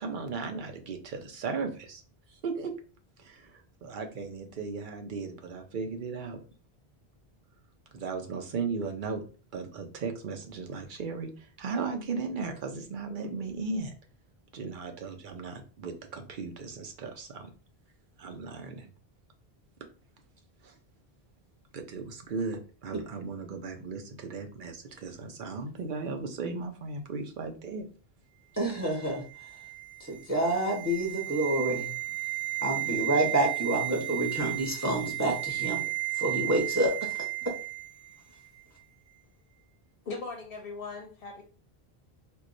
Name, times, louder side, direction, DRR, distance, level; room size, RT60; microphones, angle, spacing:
voice 1, 0.0-2.0 2.3-2.7 3.2-6.4 7.9-9.2 9.5-13.9 14.5-17.5 18.2-18.9 20.6-20.7 21.7-27.9, right 4 dB, 55° right, 5 dB, 0.8 m, -36 dB
voice 2, 28.6-29.2 30.1-31.9 32.6-35.8 36.2-37.2, right 1 dB, 15° right, 0 dB, 0.8 m, -28 dB
sound 1, 28.9-38.2 38.4-38.6, right 20 dB, 80° right, 1.2 m, -34 dB
voice 3, 40.1-41.4, left 3 dB, 65° left, 3 dB, 0.8 m, -39 dB
4.5 x 2.3 x 2.6 m, 0.37 s
omnidirectional pair, 1.1 m